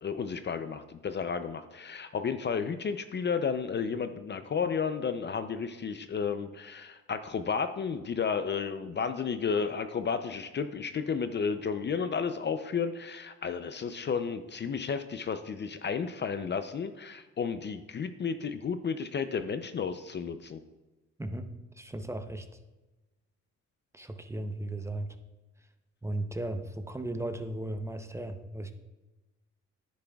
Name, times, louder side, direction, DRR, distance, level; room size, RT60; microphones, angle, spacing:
voice 1, 0.0-20.6, left 6 dB, 35° left, 10 dB, 0.5 m, -32 dB
voice 2, 21.2-22.5 23.9-25.2 26.0-28.7, right 1 dB, 10° right, 7 dB, 0.7 m, -36 dB
10.0 x 9.4 x 2.3 m, 1.1 s
cardioid pair, 90°, 30 cm